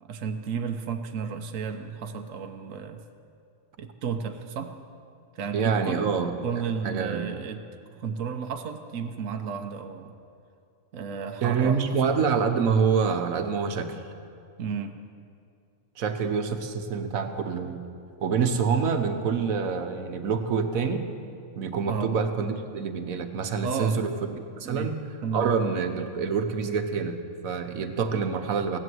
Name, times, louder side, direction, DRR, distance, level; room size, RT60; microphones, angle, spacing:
voice 1, 0.0-3.0 3.8-4.7 5.3-6.0 6.4-7.6 8.0-10.1 10.9-12.0 14.6-15.0 21.9-22.1 23.6-24.0 24.6-24.9 25.2-25.5, right 6 dB, 70° right, 5 dB, 1.2 m, -32 dB
voice 2, 5.5-6.3 6.8-7.3 11.4-14.0 16.0-17.8 18.2-21.1 21.6-25.0 25.3-28.8, right 6 dB, 90° right, 7 dB, 1.4 m, -26 dB
16.0 x 11.0 x 7.7 m, 2.4 s
omnidirectional pair, 1.4 m